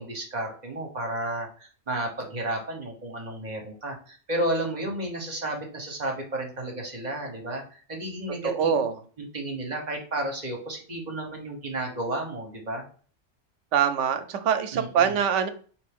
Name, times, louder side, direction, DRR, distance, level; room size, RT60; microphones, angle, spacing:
voice 1, 0.0-8.8 9.2-12.8 14.7-15.2, right 1 dB, 40° right, 1 dB, 1.1 m, -32 dB
voice 2, 8.4-8.9 13.7-15.5, right 8 dB, 85° right, 9 dB, 0.9 m, -24 dB
4.3 x 2.8 x 3.5 m, 0.41 s
omnidirectional pair, 1.2 m